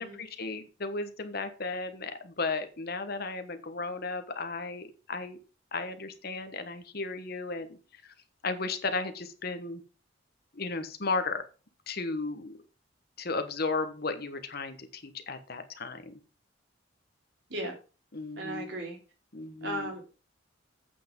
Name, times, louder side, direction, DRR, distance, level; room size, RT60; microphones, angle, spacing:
voice 1, 0.0-5.4 5.7-7.8 8.0-8.1 8.4-9.8 10.5-11.4 11.9-12.5 13.2-16.1 18.1-18.7 19.3-19.9, left 3 dB, 55° left, 9 dB, 1.2 m, -34 dB
voice 2, 18.4-19.0 19.6-20.0, right 1 dB, 65° right, 1 dB, 3.6 m, -36 dB
8.4 x 6.0 x 5.3 m, 0.35 s
head